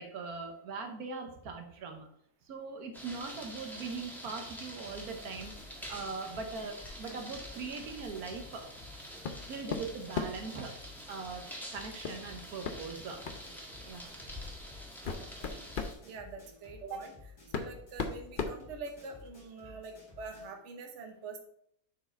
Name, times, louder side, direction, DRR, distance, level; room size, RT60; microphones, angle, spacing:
voice 1, 0.0-2.1 2.4-8.7 9.5-13.2 13.8-14.1 19.6-19.8, right 4 dB, 75° right, 4 dB, 1.4 m, -41 dB
sound 1, 2.9-15.9, equal, ahead, 1.3 m, -47 dB
sound 2, 4.8-20.6, left 3 dB, 80° left, 3.3 m, -54 dB
sound 3, 9.2-9.4 9.7-10.5 12.0-12.2 12.6-12.8 13.2-13.4 14.3-14.4 14.8-16.0 17.0-17.1 17.5-19.3, left 5 dB, 50° left, 0.6 m, -36 dB
voice 2, 15.0-15.7 16.0-17.1 17.5-21.4, right 4 dB, 50° right, 4 dB, 1.2 m, -45 dB
6.9 x 4.7 x 4.4 m, 0.69 s
omnidirectional pair, 1.6 m